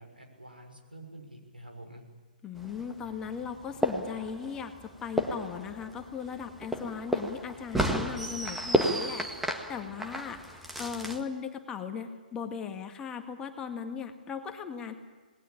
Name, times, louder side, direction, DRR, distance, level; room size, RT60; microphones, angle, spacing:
voice 1, 0.0-2.0, right 1 dB, 85° right, 3 dB, 6.3 m, -48 dB
voice 2, 2.4-14.9, left 7 dB, 15° left, 6 dB, 1.9 m, -38 dB
sound 1, 2.6-11.2, right 1 dB, 5° right, 1.8 m, -33 dB
27.5 x 20.0 x 8.9 m, 1.4 s
figure-of-eight pair, 125°, 5 cm